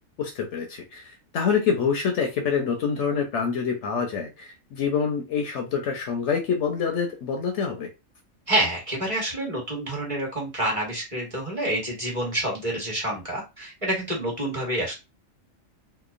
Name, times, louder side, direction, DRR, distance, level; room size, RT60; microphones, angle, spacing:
voice 1, 0.2-7.9, left 6 dB, 70° left, 0.8 m, -26 dB
voice 2, 8.5-15.0, right 1 dB, 25° right, 1.2 m, -28 dB
2.9 x 2.2 x 2.4 m
omnidirectional pair, 1.4 m